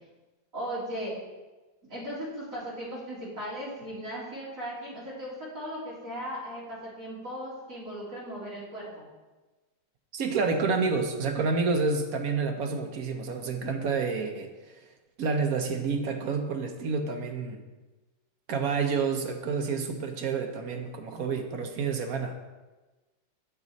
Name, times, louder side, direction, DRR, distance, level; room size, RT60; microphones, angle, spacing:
voice 1, 0.5-1.2 1.9-9.1, equal, 45° right, -7 dB, 3.0 m, -37 dB
voice 2, 10.1-14.8 15.2-17.6 18.5-22.3, right 4 dB, 60° right, 5 dB, 1.0 m, -29 dB
8.2 x 6.1 x 4.0 m, 1.2 s
omnidirectional pair, 2.1 m